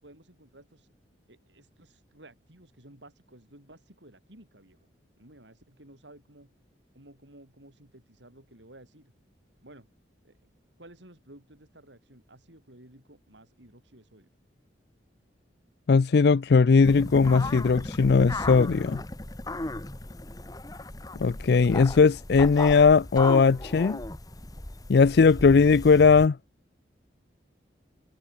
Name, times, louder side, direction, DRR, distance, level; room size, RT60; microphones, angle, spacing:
voice 1, 0.0-0.9 1.3-4.9 5.2-6.5 6.9-9.1 9.6-9.9 10.2-10.4 10.8-14.3, right 1 dB, 75° right, 6.9 m, -54 dB
voice 2, 15.9-19.0 21.2-24.0 24.9-26.4, left 4 dB, 60° left, 0.4 m, -19 dB
sound 1, 16.8-26.3, left 2 dB, 20° left, 1.3 m, -36 dB
head